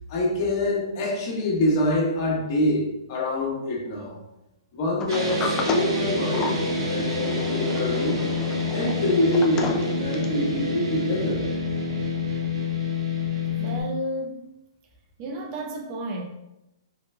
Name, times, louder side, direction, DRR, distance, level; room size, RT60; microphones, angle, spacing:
voice 1, 0.1-4.2 4.7-6.6 6.9-8.2 8.7-11.4, left 1 dB, 45° left, -4 dB, 1.4 m, -25 dB
Sliding door, 5.0-10.4, left 5 dB, 20° left, 0.3 m, -32 dB
sound 1, 5.1-13.8, left 2 dB, 80° right, 1.2 m, -27 dB
voice 2, 13.5-14.4 15.2-16.2, right 1 dB, 35° right, 1 dB, 0.6 m, -32 dB
4.7 x 3.0 x 2.2 m, 0.91 s
hypercardioid pair, 140°, 3 cm